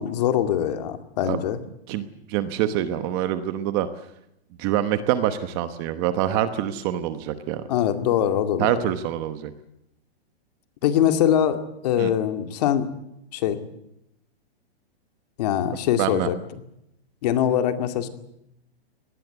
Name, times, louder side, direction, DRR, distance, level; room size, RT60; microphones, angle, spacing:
voice 1, 0.0-1.6 7.7-8.9 10.8-12.9 13.3-13.6 15.4-16.4 17.2-18.1, left 10 dB, 40° left, 8 dB, 2.3 m, -23 dB
voice 2, 1.9-3.9 4.6-7.6 8.6-9.5 12.0-12.1 16.0-16.3, right 11 dB, 20° right, 11 dB, 1.0 m, -25 dB
24.0 x 19.0 x 8.0 m, 0.81 s
hypercardioid pair, 170°, 33 cm